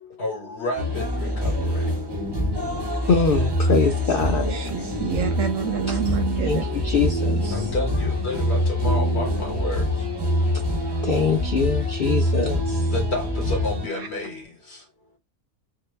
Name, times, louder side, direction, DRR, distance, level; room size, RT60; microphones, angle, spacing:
voice 1, 0.2-1.8 7.5-9.9 12.9-14.4, left 2 dB, 45° left, 1.4 m, -30 dB
sound 1, 0.6-14.5, left 6 dB, 5° right, 0.8 m, -39 dB
sound 2, 0.8-13.9, equal, 35° right, 0.3 m, -25 dB
voice 2, 3.1-4.6 5.9-6.0 6.4-7.7 11.0-12.9, left 5 dB, 65° left, 0.5 m, -23 dB
voice 3, 4.5-6.6, right 8 dB, 70° right, 0.8 m, -27 dB
3.7 x 2.1 x 3.1 m
omnidirectional pair, 1.6 m